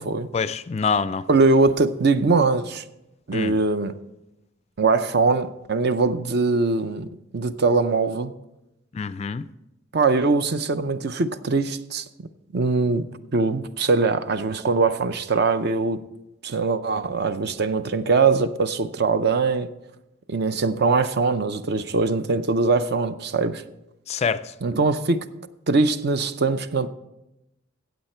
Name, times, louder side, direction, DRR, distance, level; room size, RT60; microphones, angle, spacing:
voice 1, 0.3-1.2 3.3-3.6 8.9-9.4 24.1-24.5, left 5 dB, 30° left, 0.3 m, -25 dB
voice 2, 1.3-2.8 3.3-4.0 4.8-7.1 7.3-8.3 9.9-12.3 12.5-13.0 13.3-16.0 16.4-19.7 20.3-23.6 24.6-25.3 25.7-26.9, right 3 dB, 50° right, 0.6 m, -22 dB
15.5 x 8.1 x 4.4 m
head